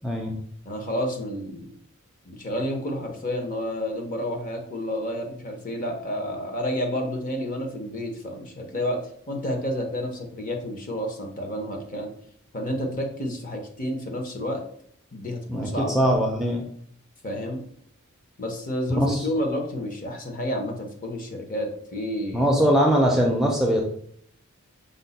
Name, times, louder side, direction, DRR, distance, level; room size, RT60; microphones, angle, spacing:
voice 1, 0.0-0.4 15.5-16.6 19.0-19.3 22.3-23.8, equal, ahead, -1 dB, 0.4 m, -21 dB
voice 2, 0.6-1.7 2.3-9.0 9.3-12.1 12.5-14.6 15.1-16.1 17.2-17.6 18.4-22.5, left 1 dB, 40° left, 2 dB, 0.8 m, -30 dB
5.2 x 2.1 x 4.0 m, 0.63 s
head